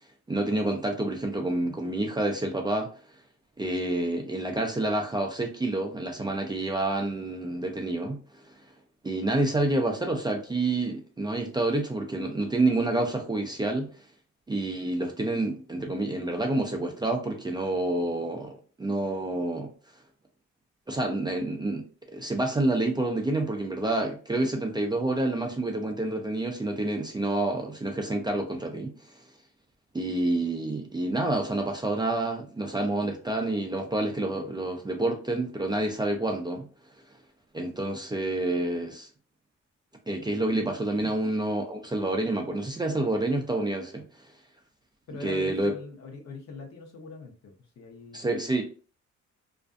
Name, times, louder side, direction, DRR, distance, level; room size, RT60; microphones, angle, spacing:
voice 1, 0.3-2.9 3.6-8.2 9.0-13.9 14.5-19.7 20.9-21.8 22.1-29.2 29.9-36.7 37.5-39.1 40.1-44.3 45.2-45.7 48.1-48.6, right 2 dB, 15° right, 0.4 m, -28 dB
voice 2, 45.1-48.3, left 3 dB, 60° left, 0.9 m, -42 dB
2.5 x 2.2 x 2.4 m
cardioid pair, 90°, 30 cm